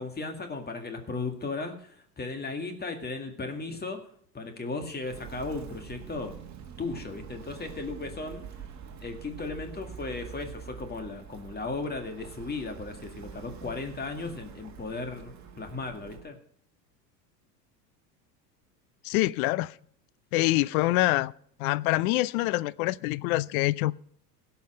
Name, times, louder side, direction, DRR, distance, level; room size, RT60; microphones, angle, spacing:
voice 1, 0.0-4.0 4.3-6.4 6.8-8.6 9.0-16.4, left 3 dB, 20° left, 2.0 m, -36 dB
Walk footsteps, 5.0-16.3, right 7 dB, 35° right, 1.8 m, -45 dB
voice 2, 19.0-19.7 20.3-21.3 21.6-23.9, left 18 dB, 60° left, 0.6 m, -25 dB
16.5 x 5.7 x 6.5 m
hypercardioid pair, 85°, 49 cm